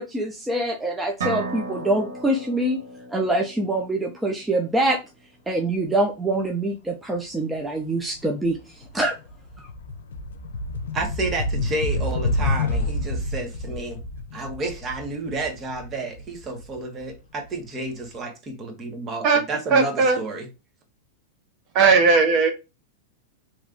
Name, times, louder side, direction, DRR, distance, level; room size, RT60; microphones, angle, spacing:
voice 1, 0.0-2.8 3.1-5.0 5.5-9.2 9.6-9.7, right 2 dB, 10° right, 0.6 m, -25 dB
sound 1, 1.2-5.0, right 3 dB, 85° right, 1.1 m, -35 dB
sound 2, 8.0-8.2 8.6-17.4, left 2 dB, 90° left, 0.6 m, -29 dB
voice 2, 10.9-14.0 14.3-20.5, right 2 dB, 25° right, 1.2 m, -31 dB
voice 3, 19.7-20.2 21.7-22.5, right 4 dB, 45° right, 1.0 m, -17 dB
3.5 x 3.0 x 2.5 m
hypercardioid pair, 130°, 0 cm